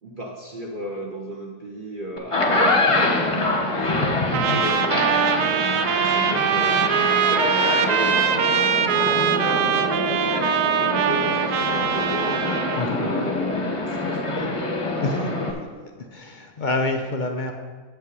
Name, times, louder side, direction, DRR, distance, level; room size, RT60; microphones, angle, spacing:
voice 1, 0.0-4.1 4.4-5.1 5.9-14.7, right 1 dB, 40° right, -1 dB, 0.9 m, -34 dB
sound 1, 2.2-15.5, left 2 dB, 25° left, 0.9 m, -25 dB
Trumpet, 4.3-12.9, right 8 dB, 80° right, 1.1 m, -22 dB
voice 2, 15.0-15.3 16.0-17.5, left 2 dB, 60° left, 4 dB, 0.5 m, -27 dB
7.9 x 5.7 x 6.7 m, 1.4 s
omnidirectional pair, 1.6 m